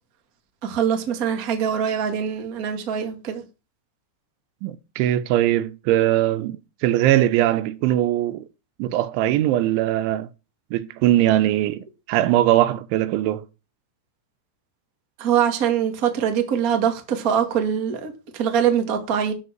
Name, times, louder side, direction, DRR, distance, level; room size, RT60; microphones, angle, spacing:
voice 1, 0.6-3.4 15.2-19.3, right 8 dB, 40° right, 1.3 m, -23 dB
voice 2, 4.6-8.4 8.8-10.3 10.7-13.5, right 13 dB, 90° right, 3.3 m, -21 dB
12.5 x 5.5 x 7.4 m
omnidirectional pair, 5.3 m